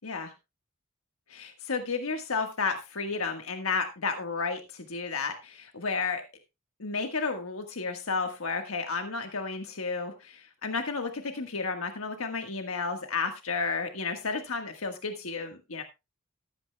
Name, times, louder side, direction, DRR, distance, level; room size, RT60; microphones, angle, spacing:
voice 1, 0.0-0.3 1.3-6.2 6.8-15.8, left 4 dB, 80° left, 5 dB, 1.4 m, -32 dB
14.0 x 13.5 x 2.2 m, 0.25 s
head